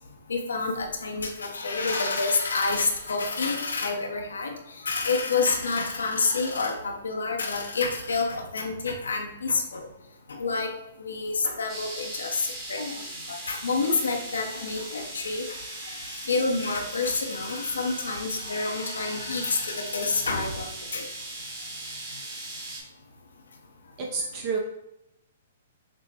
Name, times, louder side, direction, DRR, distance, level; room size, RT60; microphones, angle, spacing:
voice 1, 0.3-9.9 10.3-10.7 11.0-13.0 13.3-20.7 20.9-21.1, left 4 dB, 85° left, 3 dB, 0.6 m, -28 dB
sound 1, 11.7-22.8, right 2 dB, 20° right, 1.2 m, -39 dB
voice 2, 24.0-24.6, right 5 dB, 40° right, 0 dB, 0.6 m, -29 dB
6.1 x 2.2 x 2.8 m, 0.89 s
hypercardioid pair, 130°, 0 cm